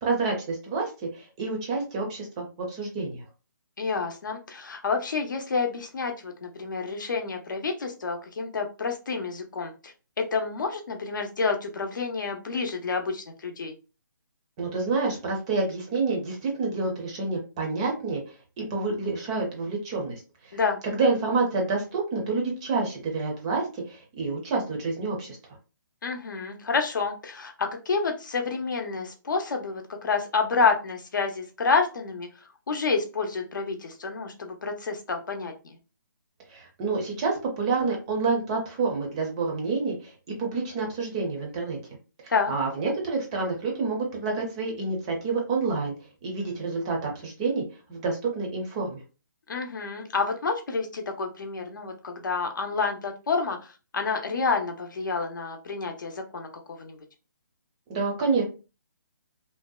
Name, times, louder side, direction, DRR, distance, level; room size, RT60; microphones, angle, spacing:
voice 1, 0.0-3.2 14.6-18.2 18.6-20.6 21.0-25.4 36.5-41.8 42.2-45.9 46.2-47.6 47.9-49.0 57.9-58.4, right 4 dB, 20° right, 0 dB, 0.5 m, -28 dB
voice 2, 3.8-13.7 20.5-20.8 26.0-32.3 32.7-35.8 42.3-42.5 49.5-57.0, left 4 dB, 65° left, 4 dB, 0.6 m, -29 dB
2.7 x 2.0 x 2.2 m, 0.32 s
hypercardioid pair, 160°, 11 cm